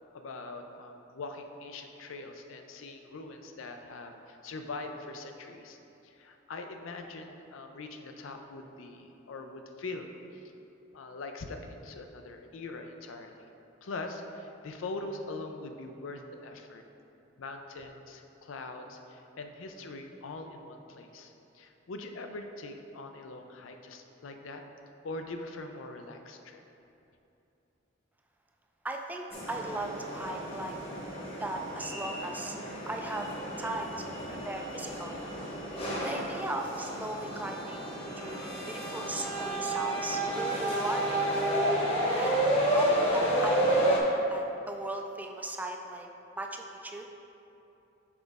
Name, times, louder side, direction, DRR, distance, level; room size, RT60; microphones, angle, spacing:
voice 1, 0.1-5.8 6.0-10.5 10.9-13.5 13.8-16.8 17.4-24.6 25.0-26.6, left 2 dB, 90° left, 5 dB, 0.5 m, -42 dB
voice 2, 28.8-30.8 31.4-32.6 32.9-33.3 33.6-35.2 36.0-41.2 42.1-44.0 44.3-46.1 46.3-47.1, right 2 dB, 10° right, 3 dB, 0.3 m, -37 dB
sound 1, 29.3-44.0, right 1 dB, 30° left, 1.0 m, -31 dB
5.9 x 5.2 x 3.5 m, 2.9 s
head